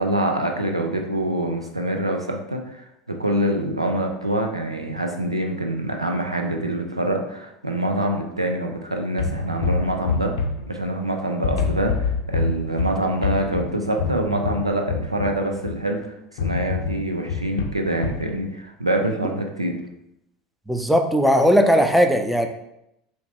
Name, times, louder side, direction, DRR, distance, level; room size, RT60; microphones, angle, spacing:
voice 1, 0.0-10.3 10.7-19.7, right 1 dB, 90° right, 3 dB, 0.5 m, -25 dB
sound 1, 9.2-11.1 11.4-15.9 16.4-18.3, left 4 dB, 65° left, 0.5 m, -26 dB
voice 2, 20.7-22.5, equal, ahead, 5 dB, 0.4 m, -18 dB
5.6 x 2.2 x 3.0 m, 0.81 s
figure-of-eight pair, 75°, 3 cm